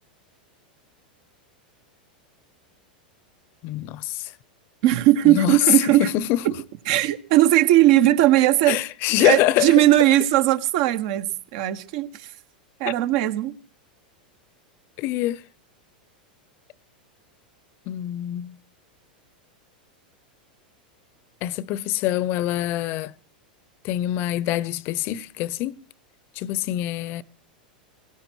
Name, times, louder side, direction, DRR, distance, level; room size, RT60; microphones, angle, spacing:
voice 1, 3.6-4.3 5.2-5.6 6.0-6.4 8.7-9.7 12.8-12.9 15.0-15.4 17.9-18.6 21.4-23.1 23.8-25.8 26.4-27.2, left 14 dB, 50° left, 0.8 m, -25 dB
voice 2, 4.8-6.1 6.4-6.5 6.9-8.8 9.2-12.3 12.8-13.5, right 15 dB, 60° right, 1.5 m, -18 dB
17.5 x 17.5 x 4.7 m
hypercardioid pair, 110°, 5 cm